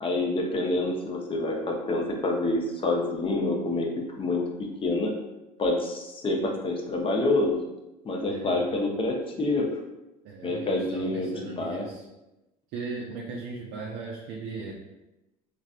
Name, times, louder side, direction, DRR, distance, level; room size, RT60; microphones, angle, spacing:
voice 1, 0.0-4.4 4.8-5.1 5.6-7.6 8.0-9.7 10.4-11.9, left 2 dB, 30° left, 1 dB, 0.7 m, -27 dB
voice 2, 8.3-8.9 10.2-12.1 12.7-14.7, right 4 dB, 60° right, -2 dB, 0.5 m, -38 dB
3.1 x 2.6 x 2.4 m, 0.95 s
hypercardioid pair, 75°, 19 cm